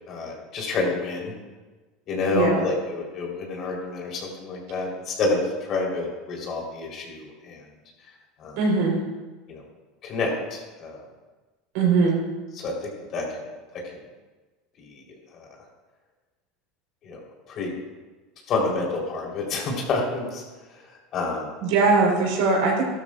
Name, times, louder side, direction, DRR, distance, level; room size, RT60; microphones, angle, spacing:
voice 1, 0.1-1.3 2.1-5.4 5.7-7.6 8.4-8.6 9.5-9.6 10.0-11.0 12.6-13.2 15.3-15.4 17.0-17.2 17.5-17.7 18.5-20.4 21.1-21.5, left 3 dB, 50° left, -1 dB, 4.0 m, -28 dB
voice 2, 2.3-2.7 8.6-9.0 11.7-12.2 21.6-22.8, right 4 dB, 70° right, -1 dB, 4.1 m, -21 dB
14.5 x 12.5 x 2.5 m, 1.3 s
hypercardioid pair, 95°, 0 cm